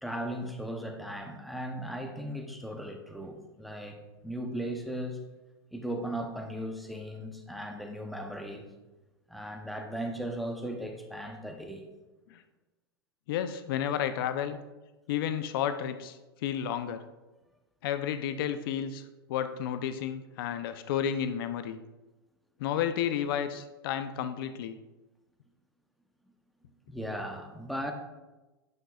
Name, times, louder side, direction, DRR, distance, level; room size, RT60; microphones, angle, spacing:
voice 1, 0.0-4.0 4.2-5.3 5.7-8.7 9.3-11.9 26.9-27.9, equal, ahead, 3 dB, 0.7 m, -37 dB
voice 2, 13.3-14.6 15.1-17.0 17.8-19.0 19.3-21.8 22.6-24.8, left 9 dB, 60° left, 10 dB, 0.5 m, -32 dB
9.3 x 5.7 x 2.3 m, 1.1 s
hypercardioid pair, 130°, 13 cm